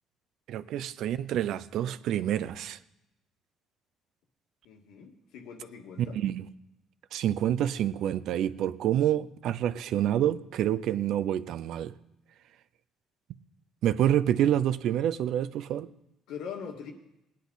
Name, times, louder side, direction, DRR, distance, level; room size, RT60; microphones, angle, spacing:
voice 1, 0.5-2.8 6.1-6.4 7.1-11.9 13.8-15.9, right 11 dB, 70° right, 0.5 m, -27 dB
voice 2, 4.7-6.2 16.3-16.9, left 7 dB, 90° left, 1.9 m, -42 dB
19.0 x 10.0 x 4.0 m
cardioid pair, 125°, 0 cm